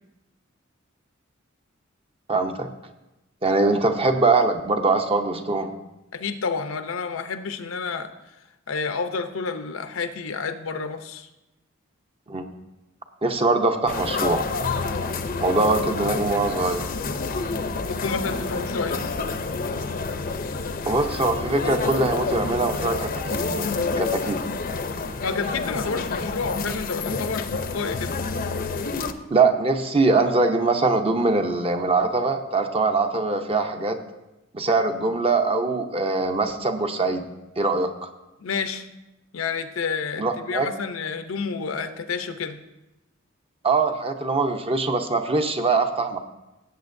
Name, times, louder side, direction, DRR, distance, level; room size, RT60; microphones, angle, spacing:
voice 1, 2.3-2.7 3.4-5.7 12.3-12.4 13.2-14.5 15.4-16.9 20.8-23.7 24.0-24.4 29.3-34.0 34.5-37.2 37.6-38.1 40.2-40.7 43.6-46.2, right 3 dB, 30° right, 5 dB, 0.7 m, -22 dB
voice 2, 6.1-8.1 8.7-11.3 17.8-19.0 25.2-28.1 38.4-38.9 39.3-42.6, left 5 dB, 85° left, 8 dB, 0.7 m, -29 dB
sound 1, 13.9-29.1, left 4 dB, 45° left, 0.6 m, -28 dB
17.0 x 8.0 x 2.6 m, 0.98 s
head